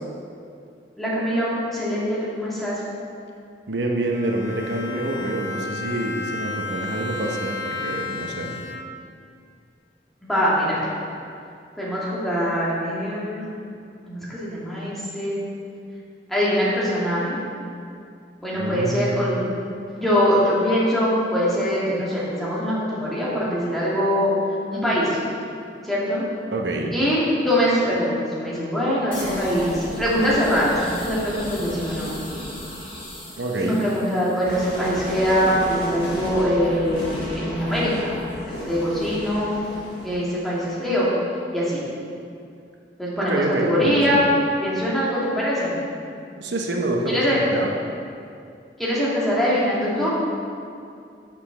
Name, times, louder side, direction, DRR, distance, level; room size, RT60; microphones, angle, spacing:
voice 1, 1.0-2.8 10.2-10.8 11.8-13.5 14.1-15.4 16.3-17.4 18.4-19.4 19.9-24.3 24.7-25.2 25.8-26.3 26.9-32.1 33.6-38.2 38.5-39.5 40.0-41.1 41.5-41.8 43.0-44.2 44.6-45.8 47.1-47.4 48.8-50.1, equal, ahead, -9 dB, 2.0 m, -23 dB
voice 2, 3.7-8.5 18.5-19.2 26.5-26.9 33.4-33.8 43.2-44.2 46.4-47.7, right 1 dB, 80° right, 1 dB, 0.8 m, -26 dB
Bowed string instrument, 4.1-9.2, left 3 dB, 90° left, 0.6 m, -33 dB
sound 1, 29.1-40.9, equal, 30° left, 2.2 m, -34 dB
6.7 x 5.9 x 5.8 m, 2.4 s
head